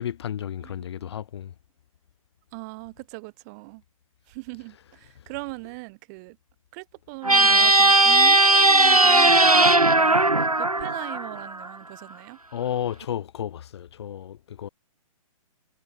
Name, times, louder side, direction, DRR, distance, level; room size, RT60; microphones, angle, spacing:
voice 1, 0.0-1.5 12.5-14.7, left 10 dB, 50° left, 3.2 m, -32 dB
voice 2, 2.5-3.8 4.3-6.4 6.7-12.4, right 28 dB, 30° right, 4.0 m, -40 dB
sound 1, 7.2-11.7, right 2 dB, 85° right, 2.2 m, -17 dB
figure-of-eight pair, 125°, 18 cm